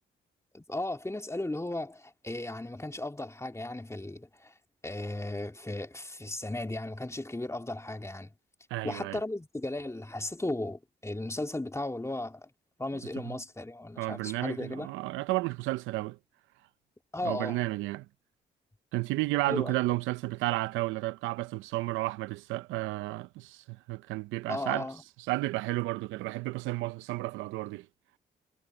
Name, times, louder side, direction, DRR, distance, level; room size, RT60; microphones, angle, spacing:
voice 1, 0.5-4.5 4.8-8.3 8.8-12.5 12.8-14.9 17.1-17.6 19.5-19.8 24.5-25.0, left 2 dB, 15° left, 2.7 m, -36 dB
voice 2, 8.7-9.2 13.2-13.4 14.0-16.2 17.2-18.1 18.9-24.9 25.3-27.9, right 19 dB, 85° right, 0.8 m, -32 dB
supercardioid pair, 50°, 20 cm